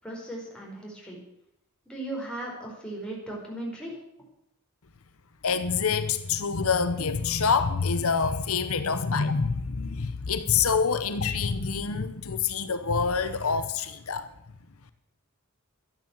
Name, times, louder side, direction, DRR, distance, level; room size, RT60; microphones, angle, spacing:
voice 1, 0.0-1.2 1.9-3.9, right 1 dB, 5° left, 4.7 m, -37 dB
voice 2, 5.4-14.3, left 5 dB, 80° left, 0.9 m, -26 dB
13.0 x 10.5 x 7.3 m
head